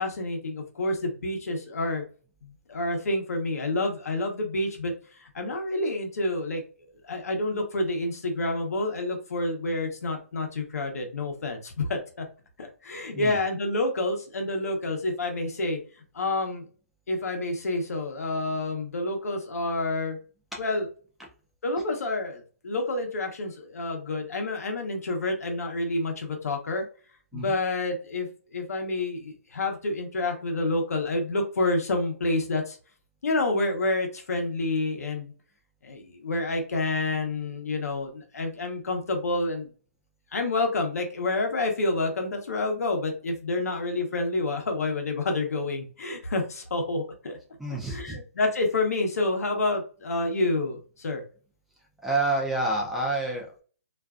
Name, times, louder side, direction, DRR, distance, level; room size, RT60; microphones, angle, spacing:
voice 1, 0.0-2.0 2.4-4.9 5.2-6.6 7.0-12.3 12.6-15.8 16.1-16.7 17.1-20.2 20.6-20.9 21.6-26.8 27.3-32.8 33.2-35.3 35.8-39.7 40.3-47.4 47.9-51.2, left 2 dB, 80° left, 3 dB, 0.8 m, -28 dB
voice 2, 47.6-48.2 52.0-53.6, right 2 dB, ahead, -2 dB, 0.4 m, -28 dB
2.5 x 2.2 x 2.3 m, 0.39 s
hypercardioid pair, 160°, 8 cm